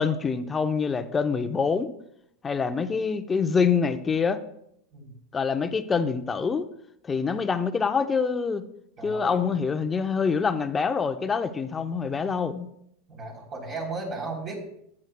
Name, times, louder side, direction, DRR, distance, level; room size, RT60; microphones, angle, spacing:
voice 1, 0.0-1.9 2.4-4.4 5.3-6.7 7.0-8.6 9.0-12.7, left 5 dB, 20° left, 9 dB, 0.7 m, -25 dB
voice 2, 9.0-9.4 13.1-14.6, right 3 dB, 35° right, 0 dB, 3.6 m, -35 dB
14.5 x 9.9 x 2.3 m, 0.73 s
supercardioid pair, 120°, 0 cm